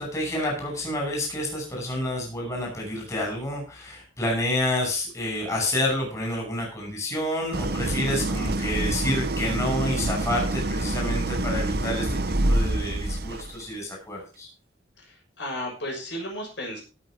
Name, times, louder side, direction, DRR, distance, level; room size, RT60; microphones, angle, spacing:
voice 1, 0.0-14.5, left 1 dB, 15° left, -1 dB, 5.9 m, -29 dB
Idling, 7.5-13.6, right 1 dB, 50° right, 1.1 m, -26 dB
voice 2, 15.0-16.8, equal, 60° left, 0 dB, 6.4 m, -34 dB
17.5 x 6.8 x 4.9 m, 0.33 s
head